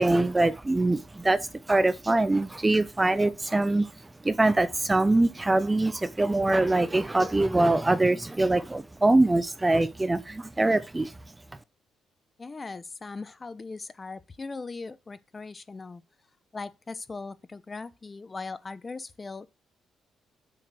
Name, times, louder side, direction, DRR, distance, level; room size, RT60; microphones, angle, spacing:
voice 1, 0.0-3.9 4.2-11.1, right 2 dB, 15° right, 0.6 m, -23 dB
voice 2, 12.4-16.0 16.5-19.5, left 4 dB, 30° left, 0.8 m, -39 dB
7.7 x 5.9 x 6.3 m
cardioid pair, 90°, 0 cm